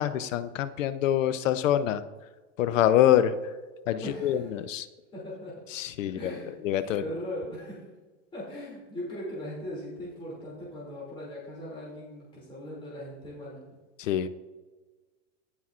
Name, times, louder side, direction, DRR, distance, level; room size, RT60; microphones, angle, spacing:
voice 1, 0.0-2.0 2.6-3.3 3.9-4.9 5.7-6.3 6.6-7.0 14.0-14.3, left 11 dB, 85° left, 13 dB, 0.7 m, -25 dB
voice 2, 4.0-4.5 5.1-5.5 6.0-6.6 6.9-7.8 8.3-13.6, equal, 15° left, -7 dB, 2.6 m, -39 dB
17.0 x 5.9 x 2.5 m, 1.3 s
supercardioid pair, 155°, 37 cm